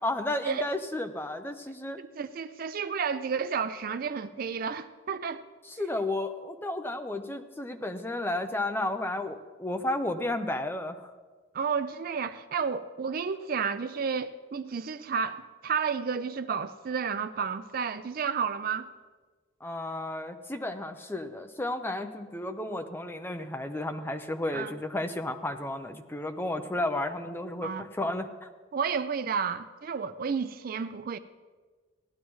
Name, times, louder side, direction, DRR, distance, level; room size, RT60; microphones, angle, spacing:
voice 1, 0.0-2.0 5.7-11.1 19.6-28.5, left 1 dB, 10° left, 0.6 m, -33 dB
voice 2, 2.0-5.4 11.5-18.9 24.5-24.8 27.6-27.9 28.7-31.2, right 6 dB, 45° right, 0.4 m, -31 dB
17.5 x 11.5 x 3.1 m
head